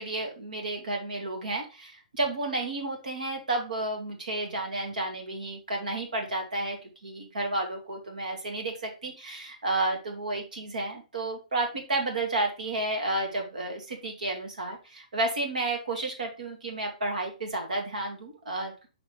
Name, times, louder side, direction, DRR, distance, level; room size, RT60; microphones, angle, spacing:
voice 1, 0.0-18.9, right 2 dB, 80° right, 3 dB, 1.9 m, -31 dB
5.7 x 5.5 x 3.4 m, 0.30 s
hypercardioid pair, 130°, 4 cm